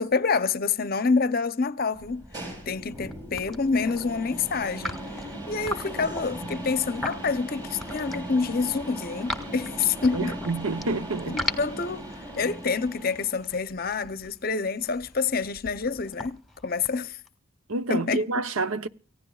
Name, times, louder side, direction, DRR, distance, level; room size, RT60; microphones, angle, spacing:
voice 1, 0.0-2.2 2.7-5.0 5.5-10.4 11.3-17.2 17.9-18.2, left 4 dB, 45° left, 0.7 m, -27 dB
sound 1, 1.9-13.6, equal, 20° right, 7.3 m, -38 dB
sound 2, 2.9-3.1 3.4-4.0 4.7-8.4 8.8-10.8 11.2-17.3, left 1 dB, ahead, 1.6 m, -37 dB
voice 2, 10.1-11.4 17.7-18.9, right 3 dB, 80° right, 0.8 m, -28 dB
29.0 x 15.5 x 2.4 m
head